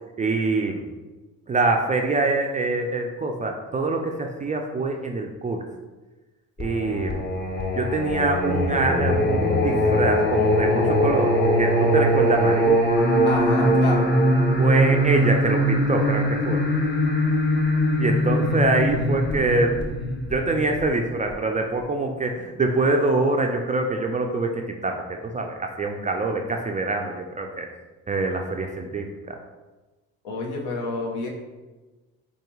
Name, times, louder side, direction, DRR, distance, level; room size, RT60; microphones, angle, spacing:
voice 1, 0.2-0.8 1.5-5.6 6.6-7.2 7.8-12.8 14.6-16.6 18.0-19.8 20.3-27.7 28.1-29.3, right 2 dB, 20° right, 2 dB, 0.3 m, -25 dB
Singing, 6.6-21.3, equal, 25° left, 0.8 m, -21 dB
voice 2, 13.2-14.1 30.2-31.3, left 2 dB, 70° left, 0 dB, 1.0 m, -28 dB
4.8 x 2.3 x 3.0 m, 1.2 s
hypercardioid pair, 60°, 39 cm